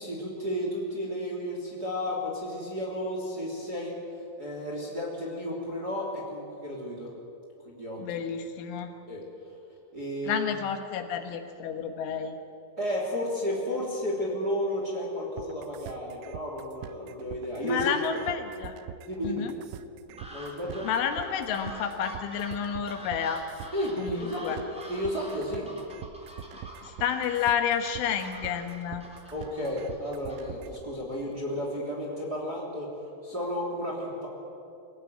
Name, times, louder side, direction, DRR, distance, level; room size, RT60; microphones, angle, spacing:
voice 1, 0.0-4.0 4.4-7.1 7.6-8.2 9.1-9.2 9.9-10.5 12.8-18.0 19.1-19.4 20.3-20.9 23.7-25.7 29.3-32.9 33.2-34.3, equal, 25° right, -1 dB, 2.8 m, -32 dB
voice 2, 8.0-8.9 10.3-12.4 17.6-18.8 19.2-19.5 20.8-23.4 24.0-24.6 26.8-29.0, left 8 dB, 75° left, 6 dB, 3.7 m, -30 dB
sound 1, 15.4-30.8, right 11 dB, 85° right, 3.3 m, -43 dB
sound 2, 20.2-30.9, equal, ahead, 2.9 m, -47 dB
23.5 x 17.5 x 9.1 m, 2.7 s
omnidirectional pair, 5.8 m